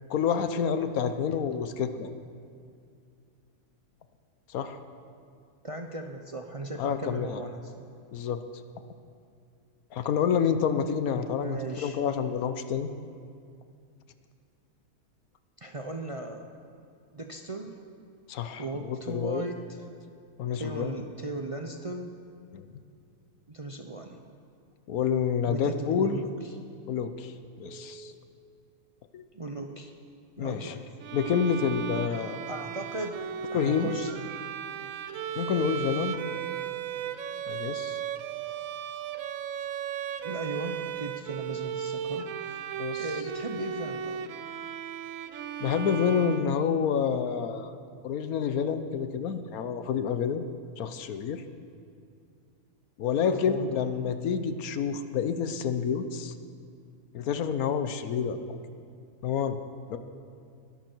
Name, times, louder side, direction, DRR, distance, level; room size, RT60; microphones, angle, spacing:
voice 1, 0.1-2.1 4.5-4.8 6.8-7.4 8.1-8.4 9.9-12.9 18.3-19.4 20.4-21.0 22.5-22.7 24.9-26.2 26.9-28.1 29.1-29.2 30.4-30.7 31.1-32.4 33.5-33.9 35.3-36.2 37.5-38.0 42.8-43.1 45.6-47.7 48.0-50.4 50.8-51.4 53.0-56.3 57.1-58.6 59.2-59.6 59.9-60.0, left 7 dB, 80° left, 10 dB, 1.2 m, -28 dB
voice 2, 5.6-7.9 10.2-10.3 11.1-12.0 15.6-16.5 17.1-17.8 18.6-19.8 20.5-22.1 23.5-24.2 25.5-26.6 29.3-29.9 30.4-30.8 32.5-33.2 33.5-34.2 40.2-42.7 43.0-44.2 53.2-54.0, right 2 dB, 35° right, 4 dB, 0.6 m, -37 dB
Telephone, 27.6-28.1 31.1-31.6 32.5-32.8 34.1-34.4 35.6-36.7, right 8 dB, 85° right, 1.4 m, -47 dB
Bowed string instrument, 31.0-47.0, right 8 dB, 70° right, 1.0 m, -36 dB
21.0 x 11.5 x 4.5 m, 2.4 s
omnidirectional pair, 1.5 m